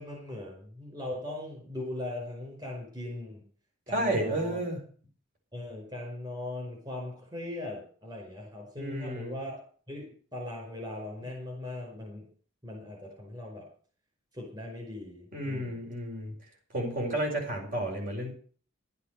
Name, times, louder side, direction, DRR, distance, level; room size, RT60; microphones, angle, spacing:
voice 1, 0.0-3.4 3.9-4.6 5.5-12.3 12.6-13.7 14.3-15.9, left 1 dB, 20° right, 0 dB, 5.3 m, -39 dB
voice 2, 3.9-4.8 8.8-9.4 15.3-16.3 16.7-18.3, right 1 dB, 45° right, 0 dB, 5.2 m, -31 dB
12.0 x 8.3 x 7.6 m, 0.43 s
head